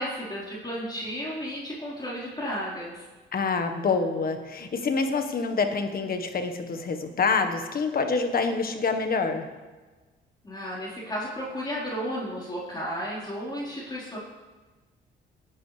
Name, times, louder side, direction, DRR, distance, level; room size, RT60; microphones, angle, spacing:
voice 1, 0.0-3.0 10.4-14.2, equal, 20° left, -6 dB, 4.5 m, -33 dB
voice 2, 3.3-9.5, left 4 dB, 50° left, 6 dB, 1.5 m, -26 dB
18.5 x 10.5 x 3.4 m, 1.3 s
cardioid pair, 90°, 20 cm